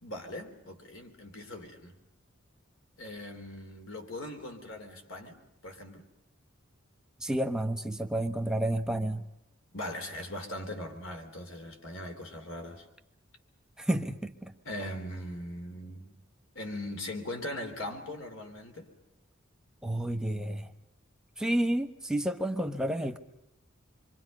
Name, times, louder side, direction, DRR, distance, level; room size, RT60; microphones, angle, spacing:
voice 1, 0.0-2.0 3.0-5.4 5.6-6.0 9.7-12.8 14.7-16.1 16.6-18.9, left 1 dB, 75° left, 3.5 m, -40 dB
voice 2, 7.2-9.3 13.8-14.5 19.8-20.7 21.4-23.2, right 1 dB, 5° right, 1.1 m, -30 dB
27.5 x 24.5 x 5.4 m
head